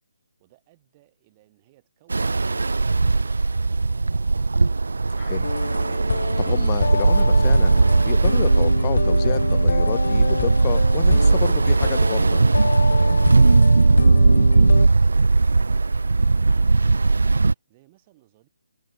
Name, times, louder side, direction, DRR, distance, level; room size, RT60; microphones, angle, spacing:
voice 1, 0.4-4.0 13.1-18.5, right 19 dB, 20° right, 7.7 m, -59 dB
Ocean, 2.1-17.5, right 3 dB, 85° right, 0.4 m, -18 dB
voice 2, 5.2-5.5 6.4-12.4, left 19 dB, 20° left, 0.7 m, -31 dB
sound 1, 5.4-14.9, left 5 dB, 60° left, 0.8 m, -28 dB
hypercardioid pair, 165°, 0 cm